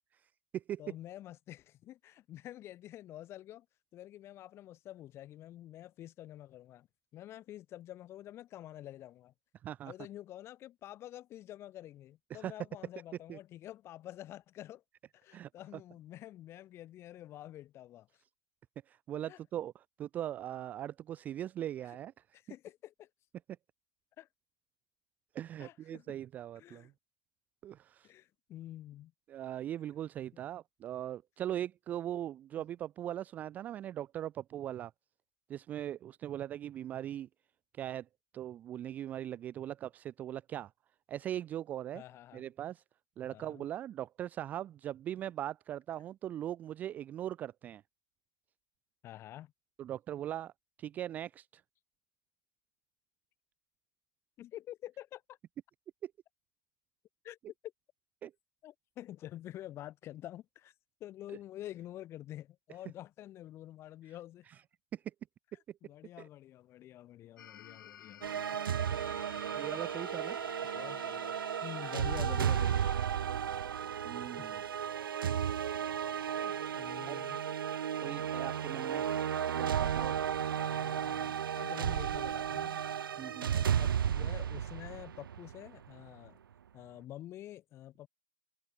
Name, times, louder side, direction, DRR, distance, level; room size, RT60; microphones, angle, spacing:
voice 1, 0.1-0.8 9.6-9.9 12.3-12.5 13.3-13.4 15.3-15.5 18.9-22.1 25.3-26.9 27.6-28.1 29.3-34.9 35.5-37.3 37.8-38.1 38.3-40.7 41.1-42.0 42.3-42.8 43.2-47.8 49.8-50.5 50.8-51.6 56.0-56.1 58.2-58.3 64.5-64.6 64.9-65.0 66.2-66.3 68.9-69.3 69.6-70.4 74.0-74.6 77.1-77.2 78.0-79.1 79.5-80.2 83.2-83.5, right 11 dB, 15° right, 0.4 m, -40 dB
voice 2, 0.8-3.7 3.9-6.9 7.1-9.3 9.9-14.8 15.1-18.2 19.3-19.4 22.3-23.1 24.2-24.3 25.6-26.2 26.6-26.9 28.0-29.1 30.3-30.4 41.9-42.4 43.3-43.7 49.0-49.5 54.4-55.4 57.2-57.4 57.6-57.7 58.6-60.7 61.0-64.5 65.8-68.6 70.2-70.4 70.7-73.0 74.4-74.5 75.4-75.6 76.4-77.4 80.3-82.8 83.5-86.4 86.7-88.1, left 13 dB, 20° left, 3.4 m, -48 dB
sound 1, 67.4-73.0, left 10 dB, 60° left, 3.1 m, -52 dB
sound 2, 68.2-85.9, right 9 dB, 75° right, 1.2 m, -34 dB
hypercardioid pair, 145°, 12 cm